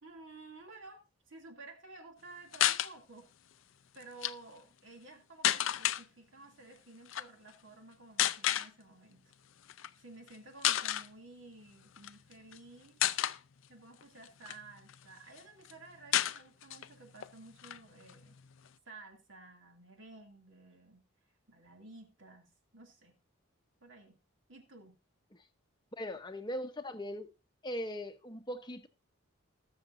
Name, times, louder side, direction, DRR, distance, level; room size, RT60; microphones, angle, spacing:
voice 1, 0.0-3.3 3.9-9.3 10.0-13.0 13.7-18.4 18.9-21.1 21.5-23.2 23.8-24.2 24.5-25.0, right 3 dB, 60° right, 2.6 m, -53 dB
sound 1, 2.5-2.9 4.0-4.3 5.4-6.0 7.1-7.3 8.2-8.7 9.7-9.9 10.3-10.4 10.6-11.1 12.0-12.6 13.0-13.4 14.0-15.0 15.4-15.5 15.7-15.8 16.1-16.9 17.2-17.3 17.6-18.7, left 12 dB, 65° left, 0.5 m, -31 dB
voice 2, 26.0-27.3 27.6-28.9, equal, 20° left, 0.9 m, -39 dB
20.0 x 6.8 x 2.6 m
head